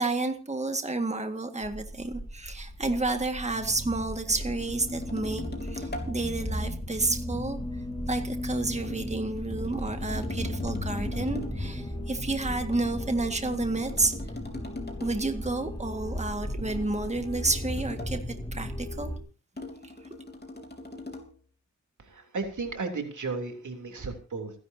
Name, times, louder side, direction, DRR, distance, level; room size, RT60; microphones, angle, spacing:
voice 1, 0.0-7.6 8.1-14.2 15.0-19.1, right 2 dB, 25° right, 6 dB, 1.8 m, -30 dB
sound 1, 1.6-19.2, left 1 dB, 15° left, 3.5 m, -35 dB
sound 2, 4.4-6.2 8.8-11.7 12.7-15.3 16.7-18.3 19.6-21.4, left 2 dB, 35° left, 3.3 m, -42 dB
voice 2, 22.0-24.5, right 4 dB, 85° right, 4 dB, 3.2 m, -34 dB
29.0 x 11.0 x 2.8 m, 0.35 s
wide cardioid pair, 95°, 30 cm